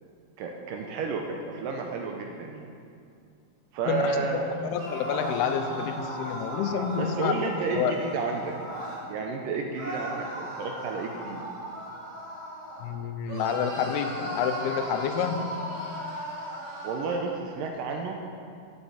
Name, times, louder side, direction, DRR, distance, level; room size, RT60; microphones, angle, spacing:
voice 1, 0.4-2.7 3.7-4.7 7.0-8.5 9.1-11.4 16.8-18.2, right 4 dB, 80° right, 2 dB, 2.0 m, -31 dB
voice 2, 3.9-4.2 4.6-7.3 7.7-8.0 12.8-15.5, left 8 dB, 85° left, 7 dB, 2.6 m, -28 dB
sound 1, 4.7-9.0 9.7-12.9 13.3-17.2, right 1 dB, 45° right, 2.9 m, -37 dB
7.4 x 7.3 x 8.3 m, 2.3 s
omnidirectional pair, 4.6 m